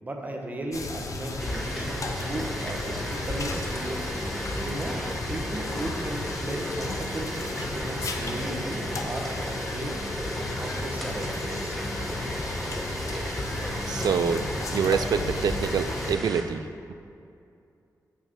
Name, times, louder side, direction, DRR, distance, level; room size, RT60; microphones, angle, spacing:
voice 1, 0.0-4.1 4.6-5.0 5.3-9.3 9.7-10.0 10.6-11.8, right 1 dB, 25° right, 1 dB, 1.1 m, -36 dB
sound 1, 0.7-16.2, left 2 dB, 50° left, 0.7 m, -34 dB
sound 2, 1.4-16.4, equal, ahead, 1.1 m, -34 dB
voice 2, 13.9-16.9, right 6 dB, 75° right, 11 dB, 0.4 m, -26 dB
6.6 x 5.6 x 7.2 m, 2.5 s
wide cardioid pair, 140°, 7 cm